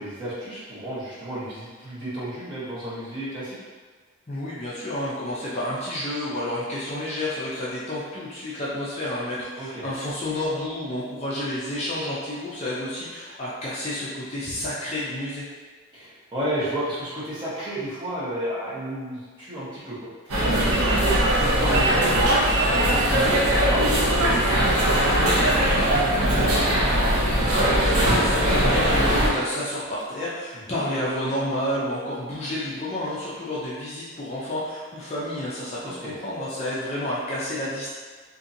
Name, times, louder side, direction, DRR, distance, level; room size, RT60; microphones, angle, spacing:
voice 1, 0.0-3.6 9.6-9.9 15.9-26.5 30.5-30.8 35.8-36.1, right 1 dB, 20° right, -10 dB, 0.8 m, -32 dB
voice 2, 4.3-15.4 27.4-37.9, left 1 dB, 30° left, -8 dB, 0.4 m, -30 dB
sound 1, 20.3-29.3, right 1 dB, 85° right, 0.6 m, -20 dB
2.7 x 2.6 x 2.5 m, 1.5 s
head